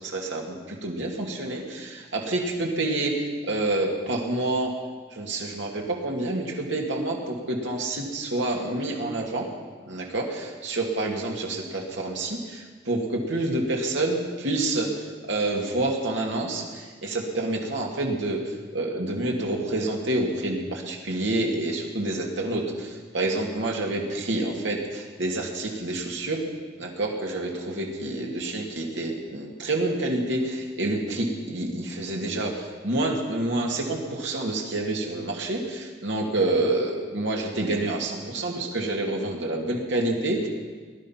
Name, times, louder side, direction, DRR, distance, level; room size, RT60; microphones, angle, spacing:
voice 1, 0.0-4.7 5.1-9.5 9.9-14.9 15.3-18.4 18.7-26.4 26.8-40.5, right 2 dB, 90° right, -1 dB, 2.4 m, -28 dB
19.5 x 11.5 x 5.8 m, 1.5 s
head